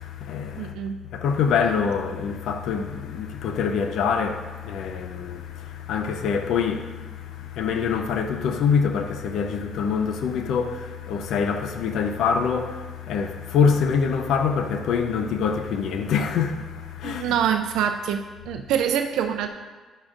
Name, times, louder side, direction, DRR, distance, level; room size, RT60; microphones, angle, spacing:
voice 1, 0.0-0.7 1.1-17.4, left 6 dB, 75° left, 0.6 m, -25 dB
voice 2, 0.6-1.0 17.0-19.5, right 8 dB, 85° right, 0.4 m, -25 dB
10.0 x 8.6 x 2.5 m
cardioid pair, 80°, 0 cm